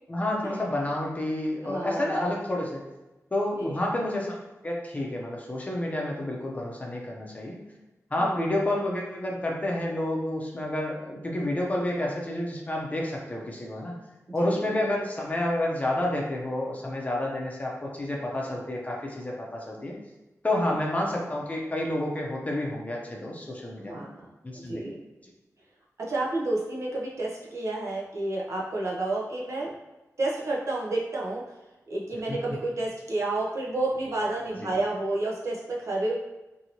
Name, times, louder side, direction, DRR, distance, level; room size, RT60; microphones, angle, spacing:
voice 1, 0.1-2.8 3.3-4.4 4.6-7.6 8.1-13.9 14.3-20.0 20.4-24.1 24.4-24.9 32.3-32.4 34.6-34.7, left 1 dB, 25° left, -1 dB, 0.6 m, -29 dB
voice 2, 1.6-2.3 3.6-3.8 8.2-8.5 14.4-14.7 20.7-20.8 23.8-24.3 24.5-25.0 26.0-29.8 30.2-31.4 31.9-36.2, right 2 dB, 60° right, -4 dB, 0.7 m, -30 dB
2.7 x 2.7 x 2.9 m, 1.1 s
wide cardioid pair, 100°, 6 cm